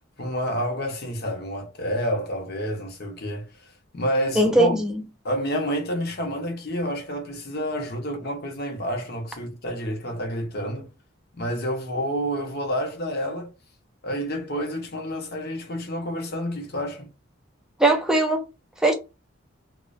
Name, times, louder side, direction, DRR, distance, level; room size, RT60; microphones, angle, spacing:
voice 1, 0.2-4.8 5.2-10.9 11.4-13.5 14.0-17.1, equal, 50° left, 0.7 m, -29 dB
voice 2, 4.4-4.9 17.8-18.4 18.8-18.9, right 1 dB, 5° right, 0.4 m, -19 dB
2.4 x 2.1 x 2.4 m
head